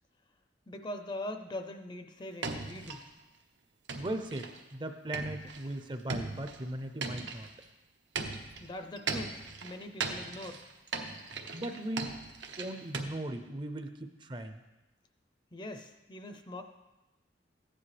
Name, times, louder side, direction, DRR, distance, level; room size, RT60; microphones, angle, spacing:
voice 1, 0.7-3.1 8.6-10.6 15.5-16.6, left 1 dB, 25° left, 7 dB, 0.6 m, -42 dB
sound 1, 2.4-3.1 3.9-4.7 5.1-7.6 8.2-13.0, right 4 dB, 85° right, 1.0 m, -39 dB
voice 2, 4.0-7.5 11.5-12.1 12.6-14.6, right 1 dB, 25° right, 7 dB, 0.6 m, -38 dB
14.5 x 9.9 x 3.3 m, 1.1 s
head